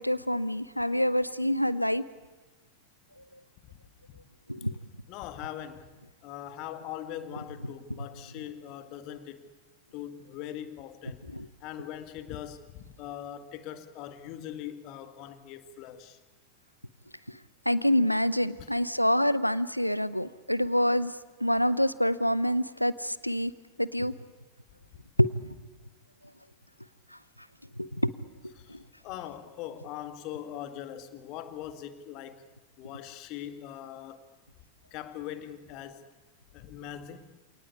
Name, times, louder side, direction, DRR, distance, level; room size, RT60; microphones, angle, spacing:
voice 1, 0.0-2.0 4.5-4.7 11.3-11.5 17.7-21.1 21.4-23.5 23.8-24.1 25.2-25.5 27.8-28.1 28.7-28.8, equal, 90° left, 18 dB, 0.8 m, -26 dB
voice 2, 5.1-5.9 6.2-9.5 9.9-11.2 11.6-16.2 18.6-18.8 28.6-32.4 32.8-34.2 34.9-36.1 36.5-37.3, left 11 dB, 40° left, 10 dB, 1.9 m, -41 dB
27.5 x 18.5 x 8.5 m, 1.2 s
figure-of-eight pair, 90°, 0 cm